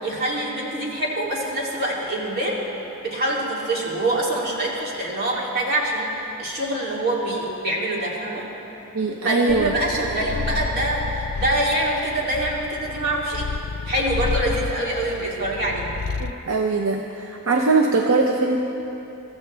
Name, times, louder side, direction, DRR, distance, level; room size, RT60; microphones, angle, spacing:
voice 1, 0.0-2.6 3.0-6.1 6.4-8.5 9.2-13.5 13.9-15.9, right 1 dB, 50° right, -4 dB, 3.0 m, -25 dB
voice 2, 8.9-9.7 16.2-18.6, right 3 dB, 70° right, 3 dB, 0.8 m, -21 dB
Purr, 9.5-16.4, left 4 dB, 80° left, 0.5 m, -31 dB
24.0 x 14.5 x 3.4 m, 3.0 s
head